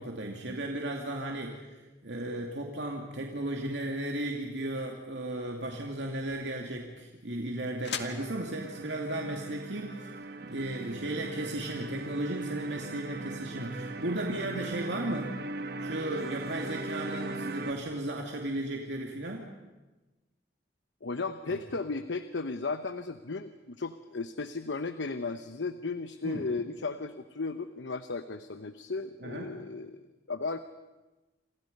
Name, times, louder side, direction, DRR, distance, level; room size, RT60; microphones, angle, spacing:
voice 1, 0.0-10.2 10.4-15.3 15.8-19.5 26.2-26.4 29.2-29.6, right 1 dB, 75° right, 1 dB, 2.6 m, -35 dB
sound 1, 5.2-11.1, left 7 dB, 70° left, 1.9 m, -46 dB
sound 2, 8.2-17.7, right 2 dB, 60° right, 1.5 m, -39 dB
voice 2, 21.0-30.0 30.3-30.6, left 3 dB, 85° left, 10 dB, 0.9 m, -35 dB
28.0 x 27.5 x 5.4 m, 1.1 s
head